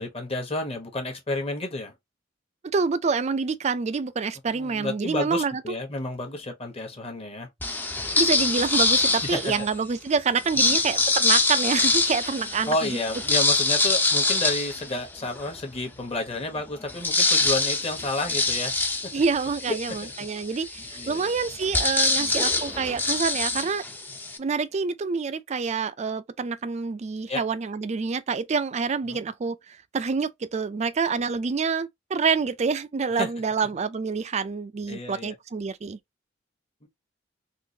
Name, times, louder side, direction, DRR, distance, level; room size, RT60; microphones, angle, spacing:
voice 1, 0.0-1.9 4.5-7.5 9.2-9.5 10.5-10.8 12.7-18.7 19.0-19.1 20.0-20.1 21.0-21.4 22.1-22.4 27.3-27.4 29.0-29.2 33.2-33.3 33.6-33.7 34.9-35.3 36.8-36.9, left 2 dB, 30° left, 1.1 m, -31 dB
voice 2, 2.6-5.6 8.2-13.0 19.1-23.9 24.4-36.0, right 5 dB, 35° right, 0.4 m, -27 dB
sound 1, 7.6-9.8 10.4-15.5 16.0-16.1 16.4-24.4, left 3 dB, 10° left, 0.5 m, -25 dB
3.8 x 2.4 x 2.7 m
head